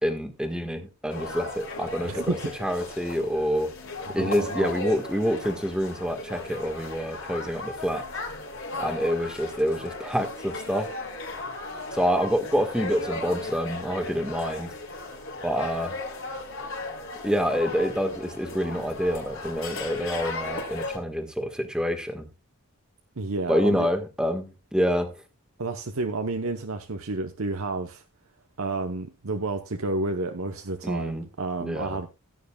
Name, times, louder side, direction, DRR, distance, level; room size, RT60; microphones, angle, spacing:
voice 1, 0.0-3.7 4.1-8.0 8.8-10.9 11.9-14.7 15.4-16.0 17.2-22.3 23.5-25.2 30.8-31.3 31.6-32.0, equal, 5° right, 1.5 m, -27 dB
sound 1, 1.1-21.0, left 2 dB, 60° left, 4.1 m, -36 dB
voice 2, 2.0-2.4 4.2-4.7 23.2-23.9 25.6-28.0 28.6-32.1, right 2 dB, 70° right, 0.9 m, -30 dB
16.5 x 9.4 x 2.3 m
head